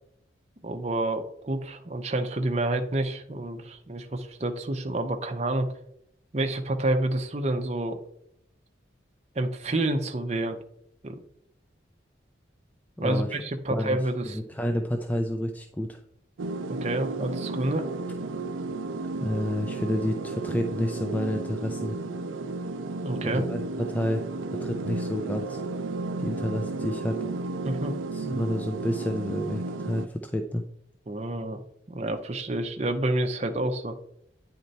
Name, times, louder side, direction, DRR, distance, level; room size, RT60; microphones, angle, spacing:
voice 1, 0.6-5.7 6.3-8.0 9.3-10.6 11.0-11.2 13.0-14.4 16.7-17.9 23.0-23.4 27.6-27.9 28.2-28.4 31.1-31.6 31.9-34.0, right 1 dB, 35° right, 5 dB, 0.7 m, -28 dB
voice 2, 13.0-13.3 13.7-16.0 19.2-22.0 23.2-23.6 23.9-24.2 24.6-25.6 26.2-27.2 28.1-30.6, left 1 dB, 10° left, 4 dB, 0.4 m, -29 dB
sound 1, 16.4-30.1, right 3 dB, 90° right, 0.5 m, -33 dB
9.2 x 4.4 x 4.1 m, 0.73 s
head